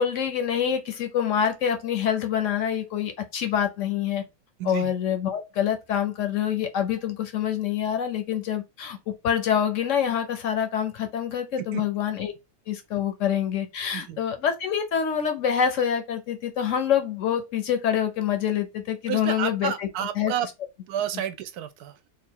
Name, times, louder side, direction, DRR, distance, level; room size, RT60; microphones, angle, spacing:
voice 1, 0.0-4.2 4.6-12.3 12.7-19.9 20.2-20.3, left 8 dB, 65° left, 0.9 m, -26 dB
voice 2, 4.6-4.9 11.7-11.8 13.9-14.2 19.1-20.5 20.9-22.0, right 9 dB, 85° right, 1.1 m, -30 dB
3.0 x 2.4 x 4.3 m
omnidirectional pair, 1.6 m